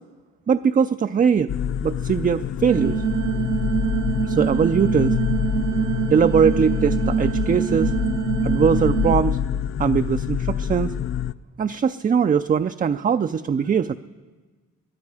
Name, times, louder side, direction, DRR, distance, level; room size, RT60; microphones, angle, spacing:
voice 1, 0.5-1.5 1.8-3.0 4.2-5.2 6.1-7.9 8.4-9.4 9.8-10.9 11.6-13.9, right 7 dB, 30° right, 10 dB, 0.5 m, -21 dB
sound 1, 1.5-11.3, left 9 dB, 45° left, 0.4 m, -26 dB
sound 2, 2.7-9.2, right 9 dB, 85° right, 1.1 m, -25 dB
22.5 x 13.0 x 4.9 m, 1.4 s
cardioid pair, 90°, 30 cm